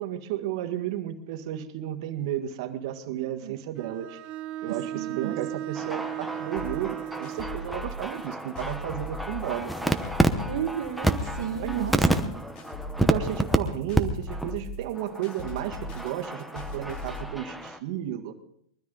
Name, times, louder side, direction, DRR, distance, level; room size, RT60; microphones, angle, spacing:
voice 1, 0.0-4.2 4.6-10.0 11.6-12.3 13.0-18.3, right 12 dB, 55° right, 5 dB, 1.7 m, -33 dB
voice 2, 3.1-3.6 4.7-5.4 10.5-12.3, right 9 dB, 80° right, 5 dB, 1.4 m, -34 dB
Bowed string instrument, 3.8-7.7, right 13 dB, 40° right, 0.6 m, -36 dB
sound 1, 5.7-13.6 13.9-14.0 14.3-14.5 14.9-17.8, right 1 dB, ahead, 0.9 m, -29 dB
sound 2, 6.6-17.2, left 2 dB, 35° left, 2.9 m, -39 dB
22.5 x 13.0 x 3.9 m, 0.69 s
supercardioid pair, 150°, 3 cm